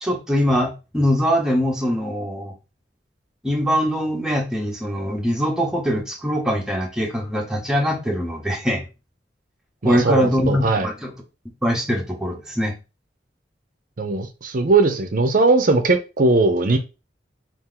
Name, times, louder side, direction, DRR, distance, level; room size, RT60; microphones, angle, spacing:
voice 1, 0.0-2.5 3.4-8.8 9.8-11.1 11.4-12.8, equal, 5° right, 0.8 m, -22 dB
voice 2, 9.8-10.9 14.0-16.8, right 3 dB, 50° right, 0.6 m, -19 dB
4.3 x 2.6 x 3.8 m
head